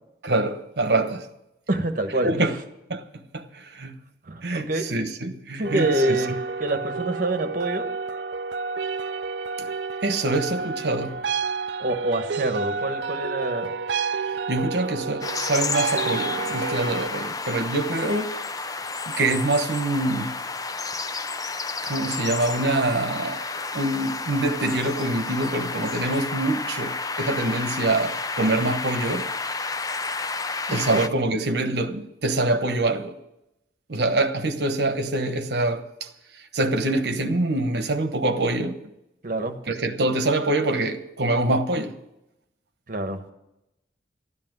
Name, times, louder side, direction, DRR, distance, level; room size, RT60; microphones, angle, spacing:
voice 1, 0.2-1.3 2.2-2.5 2.9-3.0 3.3-4.0 4.4-6.4 9.6-9.7 10.0-11.2 14.5-18.4 19.2-20.4 21.8-29.3 30.7-33.1 33.9-36.1 36.5-38.8 39.7-42.0, right 2 dB, 70° right, 1.1 m, -25 dB
voice 2, 1.7-2.3 4.3-4.9 5.6-6.3 6.6-7.9 11.8-13.7 30.7-31.0 39.2-39.6 42.9-43.2, right 1 dB, 50° right, 1.3 m, -26 dB
sound 1, 5.6-17.1, right 5 dB, 85° right, 0.5 m, -30 dB
sound 2, 15.2-31.1, left 4 dB, 20° left, 0.5 m, -31 dB
12.5 x 8.5 x 9.4 m
head